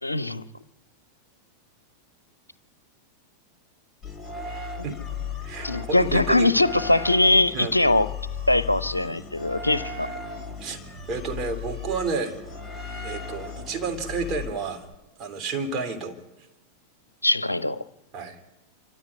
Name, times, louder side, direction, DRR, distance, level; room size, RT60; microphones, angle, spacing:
voice 1, 0.0-0.4 5.6-8.1 8.5-10.1 17.2-17.8, left 2 dB, 85° left, 0.7 m, -21 dB
sound 1, 4.0-14.9, left 4 dB, 5° left, 2.7 m, -36 dB
voice 2, 5.4-6.5 7.5-7.7 10.6-10.8 11.1-12.4 13.0-14.9 15.2-16.2 18.1-18.4, right 4 dB, 30° right, 3.1 m, -30 dB
27.0 x 13.0 x 9.7 m
figure-of-eight pair, 90°, 0 cm